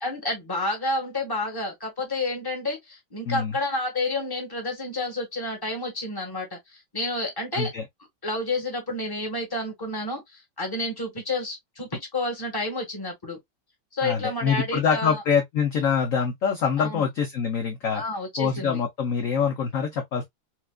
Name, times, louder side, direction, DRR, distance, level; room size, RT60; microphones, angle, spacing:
voice 1, 0.0-7.7 8.2-13.4 13.9-15.2 16.8-17.0 17.9-18.8, left 2 dB, 15° left, 1.2 m, -30 dB
voice 2, 7.5-7.8 14.0-18.0 18.4-20.2, left 6 dB, 65° left, 0.8 m, -25 dB
4.6 x 2.4 x 2.2 m
omnidirectional pair, 2.2 m